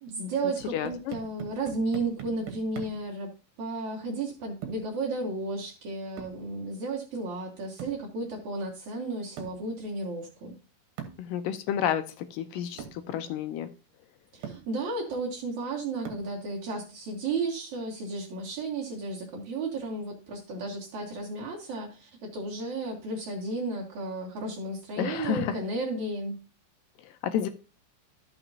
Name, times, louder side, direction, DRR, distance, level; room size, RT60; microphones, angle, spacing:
voice 1, 0.0-3.3 3.6-10.6 14.3-26.4, right 3 dB, 60° right, -2 dB, 2.7 m, -33 dB
sound 1, 0.6-3.1 4.6-5.0 6.2-6.5 7.8-8.1 9.4-9.7 11.0-11.3 12.2-12.3 12.8-13.1 13.9-14.0 14.4-14.7 16.1-16.4, right 8 dB, 80° right, 3.0 m, -42 dB
voice 2, 0.7-1.1 11.2-13.7 25.0-25.6 27.0-27.5, left 9 dB, 80° left, 9 dB, 2.2 m, -30 dB
13.0 x 5.9 x 2.7 m, 0.33 s
omnidirectional pair, 4.1 m